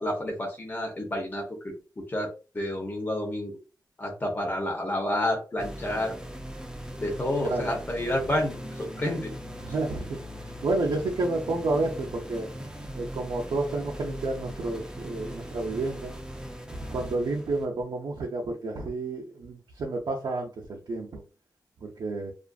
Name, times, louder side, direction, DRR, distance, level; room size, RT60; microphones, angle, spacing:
voice 1, 0.0-1.7 2.1-2.3 2.5-3.5 4.0-6.1 7.0-9.3, left 1 dB, 25° left, 1 dB, 0.8 m, -29 dB
sound 1, 5.6-17.6, equal, 10° right, 0.4 m, -40 dB
voice 2, 9.6-10.2 10.4-12.5 12.9-16.1 16.9-21.2 21.8-22.3, right 2 dB, 75° right, -1 dB, 0.5 m, -30 dB
2.4 x 2.4 x 2.3 m, 0.34 s
wide cardioid pair, 115°, 7 cm